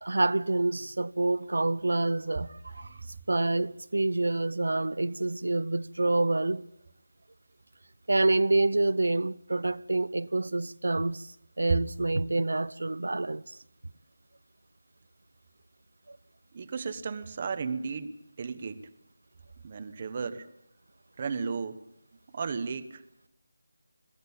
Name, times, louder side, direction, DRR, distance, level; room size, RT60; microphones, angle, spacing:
voice 1, 0.0-3.0 3.3-6.6 8.1-11.3 11.6-13.6 16.1-16.2, right 2 dB, 75° right, 0.7 m, -27 dB
voice 2, 16.5-18.8 19.6-20.5 21.2-21.8 22.3-23.0, right 5 dB, 25° right, 1.0 m, -34 dB
22.0 x 16.0 x 8.7 m
figure-of-eight pair, 175°, 0 cm